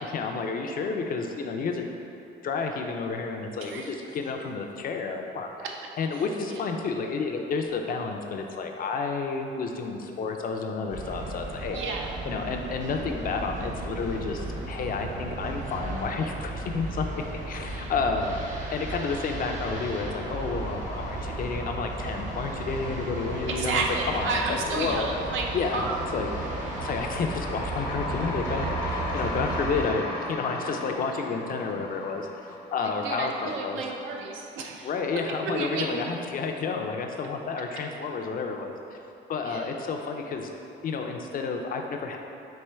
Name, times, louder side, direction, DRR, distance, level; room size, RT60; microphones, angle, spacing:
voice 1, 0.0-1.9 2.4-5.5 6.0-11.8 12.2-18.4 18.7-25.1 25.5-25.8 26.1-26.3 26.8-32.3 32.7-33.9 34.8-38.7 39.3-40.5 40.8-42.2, left 4 dB, 45° left, 3 dB, 0.4 m, -30 dB
sound 1, 10.9-29.9, right 3 dB, 40° right, 0.8 m, -35 dB
voice 2, 11.7-12.1 23.5-25.4 25.7-25.9 32.8-34.9 35.4-36.0 39.4-39.7, right 3 dB, 80° right, 0 dB, 0.6 m, -31 dB
sound 2, 17.4-17.9 18.2-33.4, left 1 dB, 75° left, 0.9 m, -37 dB
4.3 x 2.9 x 3.4 m, 2.8 s
cardioid pair, 90°, 20 cm